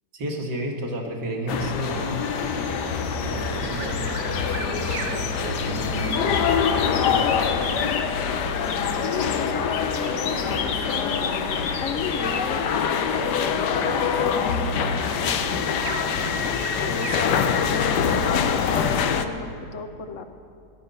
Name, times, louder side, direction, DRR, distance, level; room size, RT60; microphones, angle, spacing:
voice 1, 0.1-2.1 3.2-7.2, right 1 dB, 85° right, 0 dB, 2.5 m, -32 dB
sound 1, 1.5-19.2, left 7 dB, 90° left, 1.4 m, -25 dB
sound 2, 1.8-19.2, right 4 dB, 50° right, 1.1 m, -36 dB
sound 3, 2.6-3.4 3.7-8.2 8.5-12.5, left 7 dB, 70° left, 1.4 m, -34 dB
voice 2, 9.0-11.4 11.8-14.0 14.3-14.6 15.1-15.6 16.9-20.2, left 5 dB, 55° left, 8 dB, 1.2 m, -34 dB
17.5 x 11.5 x 5.5 m, 2.4 s
omnidirectional pair, 1.7 m